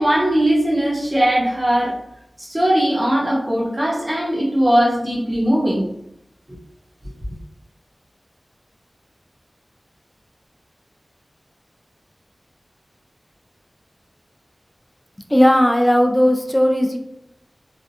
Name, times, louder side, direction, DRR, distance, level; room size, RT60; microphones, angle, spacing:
voice 1, 0.0-2.0 2.4-5.9, right 1 dB, 25° right, -4 dB, 0.9 m, -19 dB
voice 2, 15.3-17.0, equal, 10° left, 4 dB, 0.3 m, -16 dB
2.5 x 2.1 x 2.7 m, 0.79 s
wide cardioid pair, 75°, 0 cm